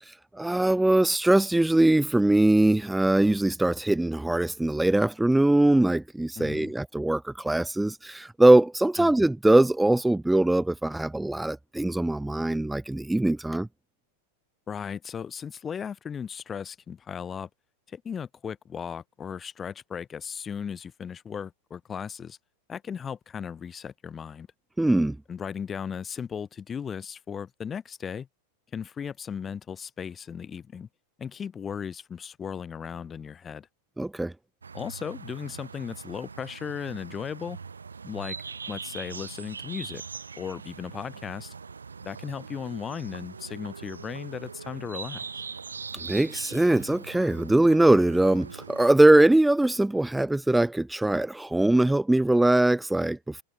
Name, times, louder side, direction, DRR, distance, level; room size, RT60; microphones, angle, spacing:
voice 1, 0.0-13.7 24.8-25.2 34.0-34.3 45.9-53.4, right 1 dB, 5° right, 0.7 m, -22 dB
voice 2, 6.4-6.7 9.0-9.1 14.7-17.5 17.9-22.4 22.7-24.5 25.3-28.3 28.7-30.9 31.2-33.7 34.7-37.6 38.0-38.4 38.7-40.0 40.4-41.5 42.0-45.2, left 7 dB, 20° left, 1.7 m, -36 dB
sound 1, 34.6-48.9, right 5 dB, 75° right, 0.7 m, -41 dB
figure-of-eight pair, 90°, 0 cm